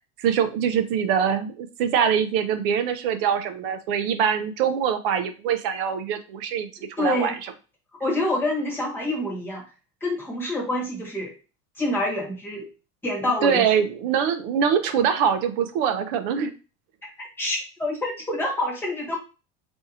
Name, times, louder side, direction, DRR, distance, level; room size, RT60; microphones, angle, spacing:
voice 1, 0.2-6.7 7.0-7.3 13.4-16.5, right 7 dB, 60° right, 9 dB, 0.6 m, -23 dB
voice 2, 7.0-7.3 8.0-9.6 10.0-11.3 11.8-12.7 13.0-13.6 17.4-19.2, left 1 dB, 5° left, -3 dB, 1.0 m, -26 dB
4.7 x 2.7 x 2.8 m, 0.32 s
cardioid pair, 180°, 32 cm